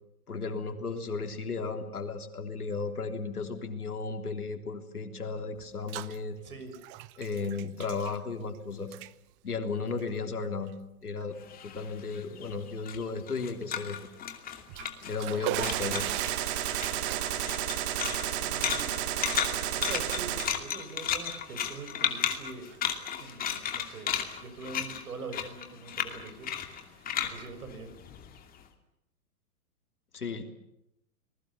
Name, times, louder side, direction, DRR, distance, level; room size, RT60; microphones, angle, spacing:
voice 1, 0.3-6.4 7.2-8.9 9.4-10.7 11.0-11.4 11.6-14.0 15.0-16.1 30.1-30.4, left 4 dB, 90° left, 5 dB, 3.5 m, -34 dB
Bathtub (filling or washing), 5.6-6.2 6.5-8.6 8.8-9.1 9.9-10.0 10.7-10.8 11.2-11.3 14.5-20.6 21.0-21.8 22.1-23.4, right 18 dB, 25° right, 0.8 m, -41 dB
voice 2, 6.4-6.7 15.4-15.5 18.4-18.9 19.7-22.7 23.2-26.5 26.8-27.9, right 3 dB, 80° right, 8 dB, 6.6 m, -44 dB
sound 1, 11.4-15.4 15.6-16.4 16.7-28.6, left 9 dB, 20° left, 2.6 m, -34 dB
Gunshot gunfire, 15.5-20.5, right 11 dB, 45° right, 2.4 m, -32 dB
29.5 x 20.5 x 7.2 m, 0.84 s
hypercardioid pair, 125°, 44 cm